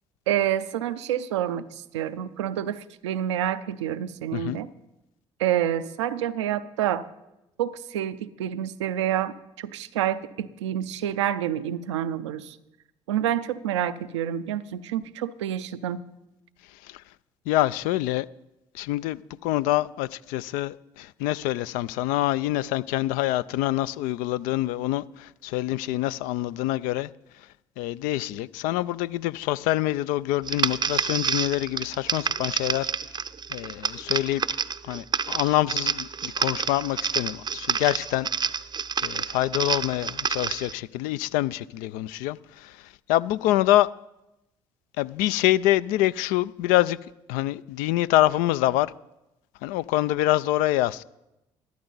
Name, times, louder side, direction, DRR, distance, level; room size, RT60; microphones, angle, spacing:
voice 1, 0.3-4.7 5.4-7.1 7.6-12.6 13.1-16.0, right 11 dB, 85° right, 0.5 m, -28 dB
voice 2, 17.5-18.3 18.7-27.1 27.8-32.9 33.5-34.4 34.8-38.3 39.0-42.8 43.1-43.9 45.0-47.0 47.3-48.9 49.6-51.0, left 15 dB, 70° left, 0.4 m, -25 dB
sound 1, 30.4-40.7, right 6 dB, 30° right, 0.5 m, -29 dB
13.5 x 11.5 x 4.0 m
hypercardioid pair, 55°, 15 cm